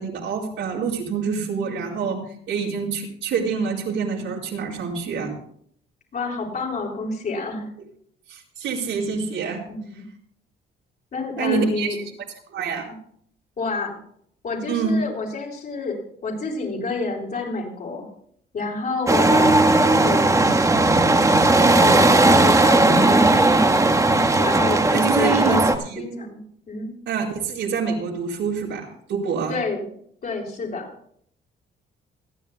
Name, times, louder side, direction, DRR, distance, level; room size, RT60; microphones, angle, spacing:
voice 1, 0.0-5.3 8.3-9.6 11.4-12.1 12.5-12.9 14.7-15.0 24.9-26.0 27.1-29.5, right 5 dB, 75° right, -3 dB, 4.6 m, -26 dB
voice 2, 6.1-7.7 9.7-10.0 11.1-12.0 12.9-13.0 13.6-13.9 14.4-18.1 18.5-20.4 21.6-23.4 24.4-25.7 26.0-26.4 26.7-26.9 29.5-29.9 30.2-30.9, left 3 dB, 45° left, -2 dB, 6.7 m, -28 dB
sound 1, 19.1-25.8, right 2 dB, 15° right, 1.4 m, -16 dB
27.5 x 10.5 x 2.3 m, 0.63 s
cardioid pair, 130°, 20 cm